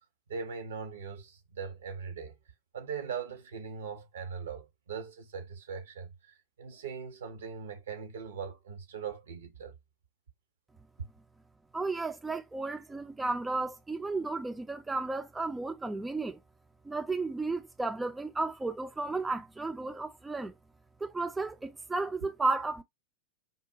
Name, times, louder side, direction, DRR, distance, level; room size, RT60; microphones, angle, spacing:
voice 1, 0.3-2.3 2.7-9.7 12.3-12.4 22.2-22.3, right 6 dB, 65° right, 0.7 m, -40 dB
voice 2, 11.7-16.4 16.8-20.5 21.0-22.8, right 3 dB, 10° right, 0.4 m, -33 dB
3.7 x 2.1 x 2.6 m
figure-of-eight pair, 90°, 0 cm